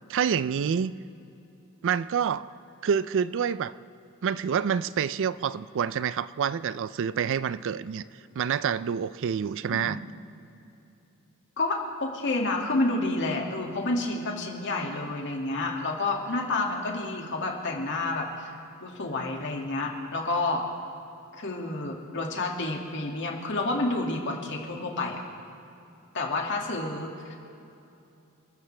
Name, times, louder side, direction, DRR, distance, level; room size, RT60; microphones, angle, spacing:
voice 1, 0.1-0.9 1.8-2.5 2.8-3.7 4.2-8.0 8.3-10.0, right 7 dB, 60° right, 16 dB, 0.4 m, -27 dB
voice 2, 11.6-18.5 18.8-20.6 21.3-25.2 26.1-27.4, left 2 dB, 55° left, 1 dB, 2.2 m, -29 dB
28.5 x 14.0 x 3.3 m, 2.8 s
head